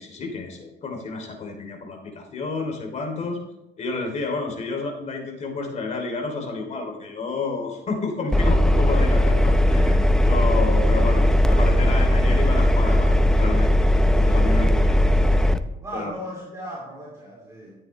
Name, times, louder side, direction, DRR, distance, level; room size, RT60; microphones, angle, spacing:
voice 1, 0.0-3.4 3.8-9.9 10.2-13.9 14.1-14.9 15.9-16.1, left 4 dB, 45° left, 3 dB, 3.0 m, -30 dB
Engine, 8.3-15.6, left 1 dB, 5° left, 0.6 m, -18 dB
voice 2, 9.6-10.1 14.5-15.2 15.8-17.8, equal, 20° right, -3 dB, 2.9 m, -37 dB
13.5 x 9.1 x 3.3 m, 0.92 s
cardioid pair, 110°, 17 cm